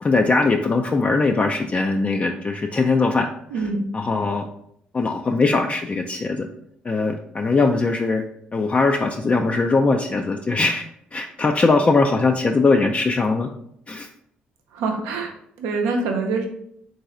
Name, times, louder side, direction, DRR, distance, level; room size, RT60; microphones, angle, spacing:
voice 1, 0.0-3.3 3.9-4.4 4.9-6.5 6.8-8.2 8.5-10.8 11.1-13.5 13.9-14.1, left 3 dB, 30° left, 3 dB, 0.3 m, -20 dB
voice 2, 3.5-3.9 14.7-16.5, right 3 dB, 75° right, 2 dB, 0.6 m, -25 dB
3.8 x 2.6 x 4.1 m, 0.73 s
hypercardioid pair, 45°, 5 cm